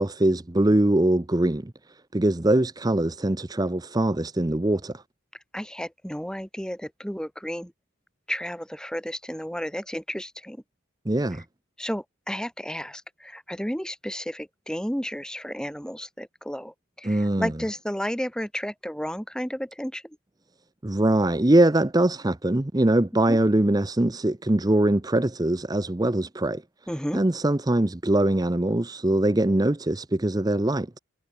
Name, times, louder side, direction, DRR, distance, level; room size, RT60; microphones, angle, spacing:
voice 1, 0.0-5.0 11.1-11.4 17.0-17.5 20.8-26.6 27.1-31.0, right 1 dB, 20° right, 0.7 m, -22 dB
voice 2, 5.5-7.7 8.3-10.6 11.3-11.4 11.8-20.2 23.3-23.4 26.9-27.2, equal, 5° left, 2.6 m, -32 dB
head